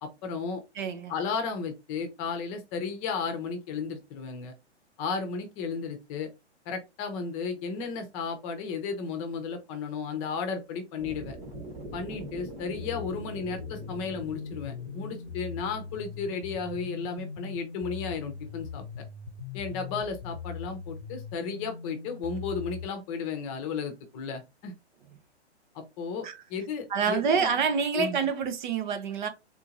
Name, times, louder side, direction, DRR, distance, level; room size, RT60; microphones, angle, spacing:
voice 1, 0.0-0.6 1.1-4.5 5.0-6.3 6.7-11.4 11.9-18.8 19.5-24.7 25.7-27.7 27.9-28.2, left 5 dB, 30° left, 0.8 m, -34 dB
voice 2, 0.8-1.1 26.2-26.4 26.9-29.3, right 6 dB, 45° right, 0.6 m, -27 dB
sound 1, 11.0-17.1, right 1 dB, 20° right, 1.1 m, -44 dB
sound 2, 12.8-22.9, left 6 dB, 90° left, 0.7 m, -41 dB
3.7 x 2.8 x 2.5 m
hypercardioid pair, 125°, 35 cm